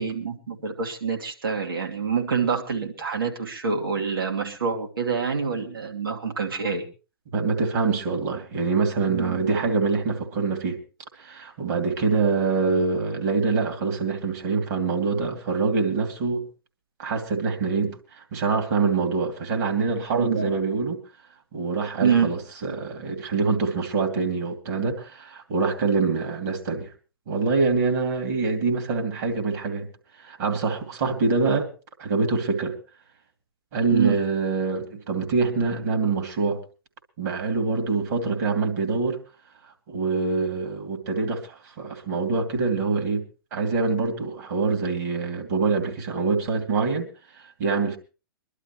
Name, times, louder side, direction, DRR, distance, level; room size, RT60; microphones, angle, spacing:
voice 1, 0.0-6.8 9.1-9.5 20.1-20.5 22.0-22.3 33.9-34.2, right 6 dB, 70° right, 2.6 m, -26 dB
voice 2, 7.3-10.8 11.2-16.5 17.0-21.0 21.5-26.9 27.3-29.9 30.2-31.7 32.0-32.8 33.7-36.6 37.2-39.2 39.9-43.2 43.5-47.1 47.6-48.0, right 4 dB, 50° right, 2.7 m, -25 dB
24.0 x 11.5 x 3.1 m
figure-of-eight pair, 110°, 12 cm